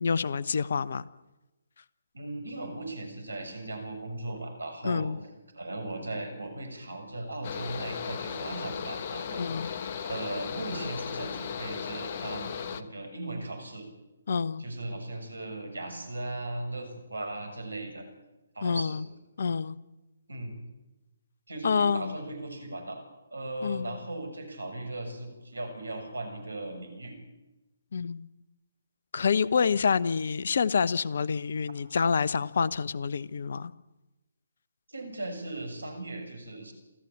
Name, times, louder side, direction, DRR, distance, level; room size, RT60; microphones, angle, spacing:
voice 1, 0.0-1.1 4.8-5.2 9.3-9.7 14.3-14.6 18.6-19.0 19.4-19.8 21.6-22.1 23.6-24.0 27.9-28.3 29.1-33.7, left 5 dB, 55° left, 17 dB, 0.9 m, -27 dB
voice 2, 2.1-5.1 5.5-9.8 10.0-13.9 14.6-18.1 18.5-19.0 20.3-20.5 21.5-23.0 23.3-27.2 34.9-36.7, right 2 dB, 75° right, 6 dB, 6.8 m, -37 dB
Mechanical fan, 7.4-12.8, left 7 dB, 40° left, 1.3 m, -36 dB
28.5 x 13.5 x 8.7 m, 1.0 s
figure-of-eight pair, 140°, 0 cm